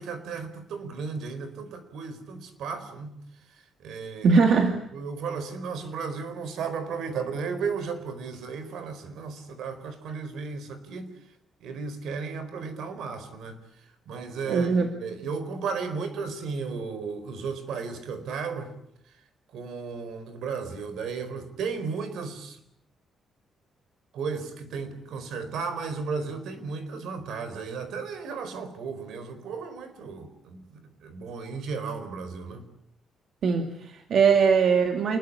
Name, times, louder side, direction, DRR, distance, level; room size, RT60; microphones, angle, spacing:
voice 1, 0.0-3.2 3.8-4.3 4.9-11.1 11.6-13.6 14.1-18.7 19.5-22.6 24.1-32.6, right 5 dB, 70° right, 11 dB, 4.6 m, -34 dB
voice 2, 4.2-4.8 14.5-14.9 15.2-15.3 33.4-35.2, right 5 dB, 55° right, 5 dB, 2.3 m, -21 dB
28.0 x 22.0 x 8.8 m, 0.75 s
cardioid pair, 160°, 0 cm